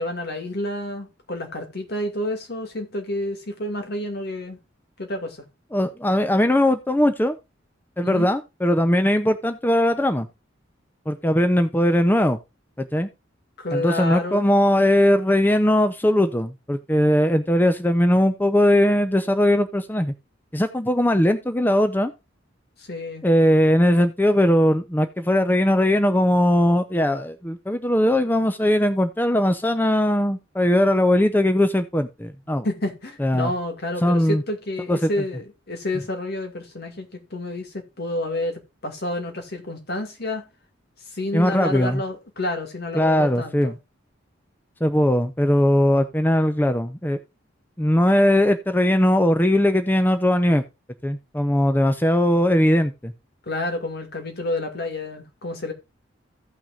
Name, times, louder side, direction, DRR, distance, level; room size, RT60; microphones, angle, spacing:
voice 1, 0.0-4.6 5.0-5.5 8.0-8.3 13.6-14.5 22.8-23.2 32.6-40.5 41.1-43.8 53.5-55.7, left 1 dB, 60° left, 2.2 m, -29 dB
voice 2, 5.7-7.4 8.0-10.3 11.1-12.4 12.8-13.1 13.7-20.1 20.5-22.1 23.2-32.7 33.2-33.5 34.0-34.4 34.9-35.1 41.3-42.0 42.9-43.7 44.8-47.2 47.8-50.6 51.0-53.1, left 1 dB, 10° left, 0.6 m, -19 dB
16.0 x 6.0 x 2.5 m
head